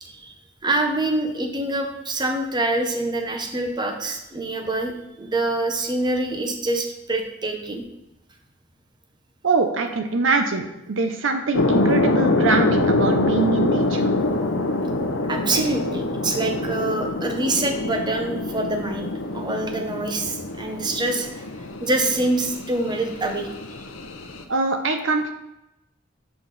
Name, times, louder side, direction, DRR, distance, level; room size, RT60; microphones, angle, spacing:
voice 1, 0.0-0.3 0.6-4.9 5.2-7.8 15.3-21.4 21.8-23.5, right 2 dB, 20° right, 4 dB, 0.8 m, -25 dB
voice 2, 9.4-14.1 24.5-25.3, right 4 dB, 65° right, 6 dB, 0.7 m, -23 dB
sound 1, 11.5-24.4, left 2 dB, 80° left, 0.8 m, -25 dB
6.5 x 5.8 x 4.1 m, 0.92 s
head